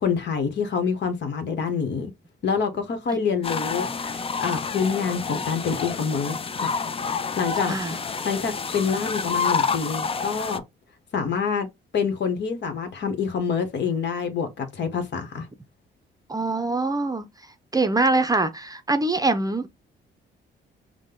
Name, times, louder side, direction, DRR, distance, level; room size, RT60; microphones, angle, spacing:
voice 1, 0.0-2.1 2.4-6.7 7.4-7.7 8.2-10.6 11.1-11.7 11.9-15.5, left 6 dB, 60° left, 1.2 m, -26 dB
sound 1, 3.4-10.6, left 5 dB, 30° left, 0.5 m, -28 dB
voice 2, 7.7-8.0 16.3-17.3 17.7-19.8, right 2 dB, 20° right, 0.6 m, -24 dB
5.1 x 2.2 x 3.8 m
cardioid pair, 90°, 20 cm